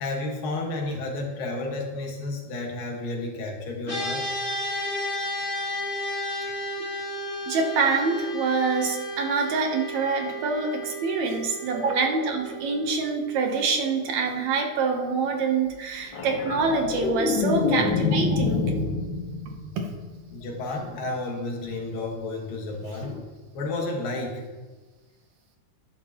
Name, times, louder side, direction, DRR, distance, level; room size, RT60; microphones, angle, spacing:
voice 1, 0.0-4.2 20.3-23.1 23.5-24.4, left 2 dB, 90° left, 0 dB, 3.4 m, -31 dB
sound 1, 3.9-15.3, equal, 25° left, 2.2 m, -34 dB
voice 2, 7.5-18.7 19.8-19.9, right 4 dB, 65° right, 3 dB, 2.1 m, -26 dB
sound 2, 16.1-20.6 23.0-23.2, left 4 dB, 55° left, 1.2 m, -27 dB
11.5 x 11.0 x 3.0 m, 1.3 s
omnidirectional pair, 3.8 m